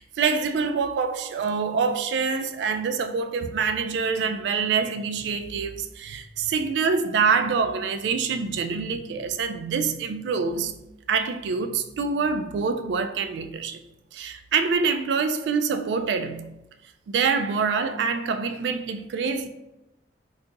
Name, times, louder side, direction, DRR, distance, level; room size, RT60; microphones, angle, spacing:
voice 1, 0.0-10.7 11.1-13.8 14.1-16.6 17.1-19.5, right 5 dB, 75° right, 0.3 m, -25 dB
2.7 x 2.4 x 3.8 m
head